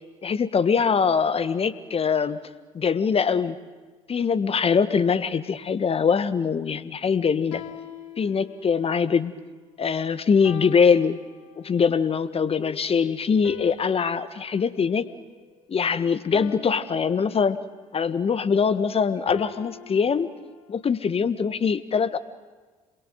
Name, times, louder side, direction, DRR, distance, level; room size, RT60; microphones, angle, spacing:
voice 1, 0.2-2.4 2.7-3.6 4.1-7.6 8.2-9.3 9.8-11.2 11.6-15.1 15.7-17.6 17.9-20.3 20.7-22.2, left 6 dB, 35° left, 13 dB, 1.6 m, -23 dB
sound 1, 7.5-8.9 10.4-11.9 13.4-15.8 16.3-17.9 19.3-20.8, left 12 dB, 70° left, 1.5 m, -44 dB
27.5 x 22.5 x 9.3 m, 1.4 s
figure-of-eight pair, 50°, 18 cm